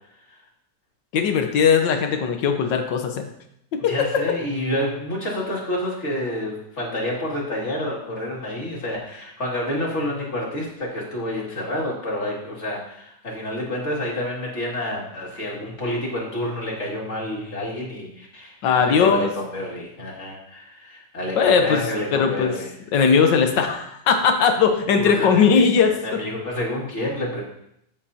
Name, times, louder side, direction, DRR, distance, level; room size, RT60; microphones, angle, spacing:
voice 1, 1.1-3.2 3.7-4.1 18.6-19.3 21.3-21.8 22.1-22.5 22.9-26.2, left 6 dB, 85° left, 5 dB, 1.7 m, -19 dB
voice 2, 3.8-22.7 25.0-27.4, left 1 dB, 40° left, -3 dB, 2.6 m, -29 dB
14.0 x 7.2 x 2.8 m, 0.74 s
omnidirectional pair, 1.9 m